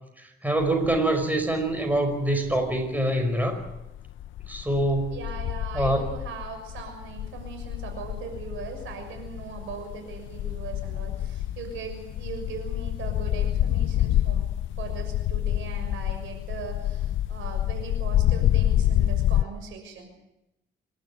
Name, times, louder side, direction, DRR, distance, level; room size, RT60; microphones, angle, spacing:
voice 1, 0.4-3.6 4.5-5.2 5.7-6.0, right 1 dB, 10° right, 5 dB, 5.2 m, -25 dB
sound 1, 0.6-1.2 1.6-3.0 3.4-19.4, left 12 dB, 80° left, 0.7 m, -28 dB
voice 2, 5.1-14.5 14.8-20.1, right 5 dB, 85° right, 5 dB, 6.6 m, -39 dB
27.0 x 12.5 x 9.5 m, 0.90 s
cardioid pair, 90°, 20 cm